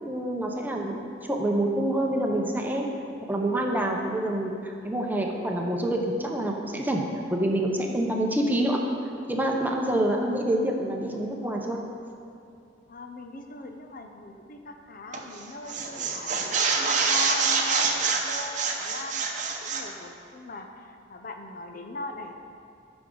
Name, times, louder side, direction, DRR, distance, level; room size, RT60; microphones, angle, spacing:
voice 1, 0.0-1.0 1.3-2.9 3.3-7.0 7.3-8.8 9.3-11.8, right 1 dB, 10° right, 0 dB, 0.8 m, -27 dB
voice 2, 12.9-16.4 16.8-22.3, left 3 dB, 50° left, 4 dB, 0.7 m, -39 dB
sound 1, 15.1-15.4 15.7-19.9, right 5 dB, 45° right, 0.8 m, -26 dB
14.5 x 6.1 x 3.9 m, 2.6 s
head